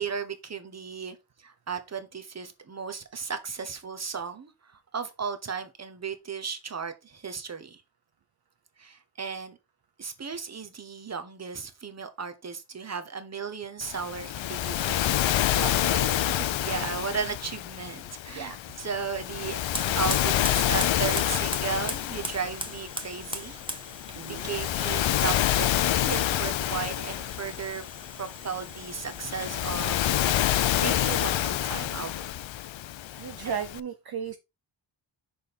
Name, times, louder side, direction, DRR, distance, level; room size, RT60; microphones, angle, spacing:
voice 1, 0.0-7.8 8.8-9.6 10.0-15.0 16.6-19.6 20.0-23.6 24.2-27.8 28.2-32.3 33.4-33.6, right 6 dB, 35° right, 1.1 m, -35 dB
Waves surf, 13.8-33.8, left 12 dB, 75° left, 0.6 m, -28 dB
voice 2, 15.5-16.5 18.3-18.6 24.1-24.5 30.9-31.1 33.2-34.4, right 7 dB, 55° right, 0.6 m, -36 dB
Fire, 19.4-30.0, right 1 dB, 10° right, 1.0 m, -41 dB
6.5 x 5.3 x 4.3 m
wide cardioid pair, 165°, 47 cm